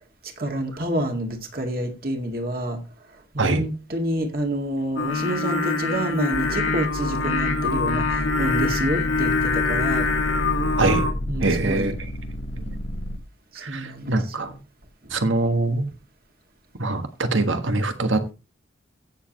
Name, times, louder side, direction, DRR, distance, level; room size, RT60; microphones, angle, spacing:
voice 1, 0.4-2.8 3.3-10.1 11.3-11.9 13.5-14.5 15.0-15.2, right 1 dB, 50° right, 2.1 m, -28 dB
Singing, 5.0-11.1, left 4 dB, 90° left, 1.8 m, -24 dB
sound 1, 6.3-13.2, equal, 70° left, 1.3 m, -31 dB
voice 2, 11.4-11.9 12.6-12.8 13.6-14.5 15.1-15.9 16.8-18.3, right 2 dB, 85° right, 1.5 m, -23 dB
15.5 x 7.0 x 3.0 m
head